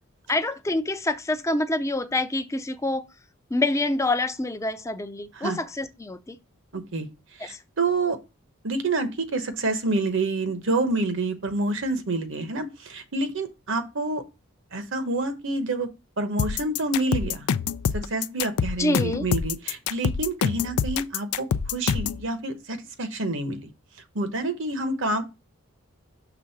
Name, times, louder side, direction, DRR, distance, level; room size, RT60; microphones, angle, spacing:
voice 1, 0.3-3.0 3.5-6.4 7.4-7.6 18.8-19.2, left 2 dB, 15° left, 0.5 m, -26 dB
voice 2, 6.7-7.1 7.4-8.2 8.6-14.2 14.7-15.9 16.2-17.5 17.9-23.7 24.1-25.2, right 2 dB, 60° right, 1.0 m, -28 dB
sound 1, 16.4-22.2, left 7 dB, 90° left, 0.4 m, -26 dB
6.1 x 3.6 x 5.7 m
head